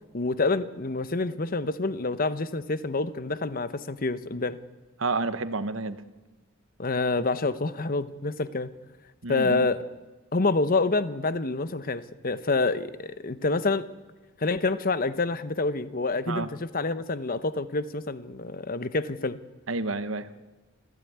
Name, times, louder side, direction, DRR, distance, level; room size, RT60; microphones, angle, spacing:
voice 1, 0.1-4.6 6.8-8.7 9.3-9.9 10.3-13.9 14.4-19.4, left 3 dB, 45° left, 13 dB, 1.0 m, -27 dB
voice 2, 5.0-6.0 9.2-9.7 16.3-16.5 19.7-20.3, right 3 dB, 70° right, 11 dB, 1.2 m, -30 dB
27.0 x 15.0 x 9.5 m, 1.2 s
head